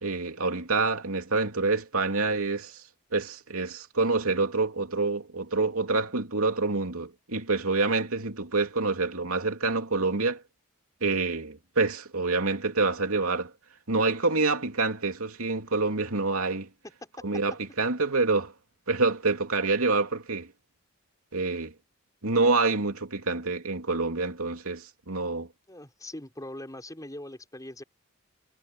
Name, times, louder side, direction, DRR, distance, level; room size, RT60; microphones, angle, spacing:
voice 1, 0.0-2.8 3.1-10.4 11.0-13.5 13.9-16.7 17.2-18.5 18.9-20.5 21.3-21.7 22.2-25.5, right 3 dB, 80° right, 2.9 m, -27 dB
voice 2, 25.7-27.8, left 1 dB, 15° left, 5.2 m, -41 dB
head